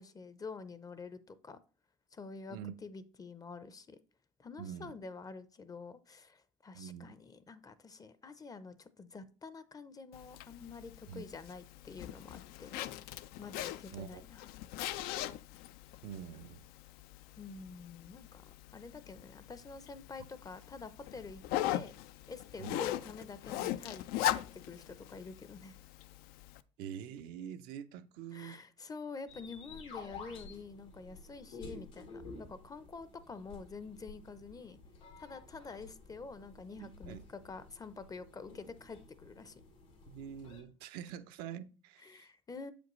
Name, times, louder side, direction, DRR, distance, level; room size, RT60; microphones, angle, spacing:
voice 1, 0.0-1.6 2.1-4.0 4.4-12.8 13.4-14.5 17.4-21.4 21.7-21.9 22.3-25.8 28.3-34.8 35.2-39.6 42.0-42.7, left 4 dB, 20° left, 0.5 m, -48 dB
voice 2, 4.6-4.9 6.7-7.2 11.1-11.3 13.9-14.2 16.0-16.6 22.6-22.8 26.8-28.6 36.8-37.2 40.1-42.3, right 9 dB, 75° right, 0.5 m, -45 dB
Zipper (clothing), 10.1-26.6, left 13 dB, 70° left, 0.4 m, -40 dB
sound 1, 29.3-40.6, left 3 dB, 90° left, 2.0 m, -52 dB
7.4 x 5.1 x 3.0 m
supercardioid pair, 90°, 16 cm